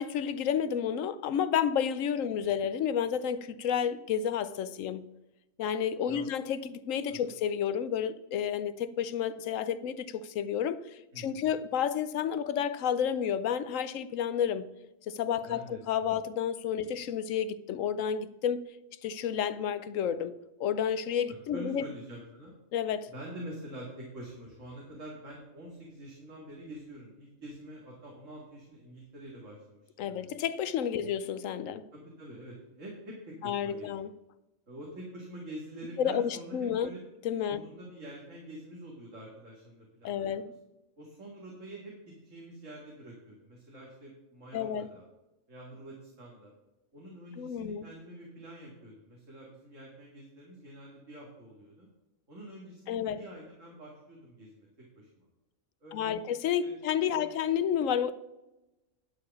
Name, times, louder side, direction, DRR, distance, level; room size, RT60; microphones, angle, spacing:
voice 1, 0.0-5.0 5.6-10.8 11.2-14.7 15.1-18.6 19.0-21.9 22.7-23.1 30.0-31.8 33.4-34.1 36.0-36.9 37.2-37.6 40.0-40.5 44.5-44.9 47.4-47.9 52.9-53.2 55.9-58.1, left 8 dB, 75° left, 1.0 m, -31 dB
voice 2, 11.1-11.6 15.4-16.2 21.5-22.5 23.1-29.8 30.1-30.3 30.9-31.2 31.9-33.9 34.7-37.0 37.5-40.5 41.0-45.0 45.5-46.5 46.9-51.9 52.3-54.7 55.0-55.3 55.8-56.3 56.6-56.7 57.1-57.3, right 1 dB, 70° right, 2.5 m, -46 dB
11.0 x 4.9 x 7.0 m
omnidirectional pair, 1.4 m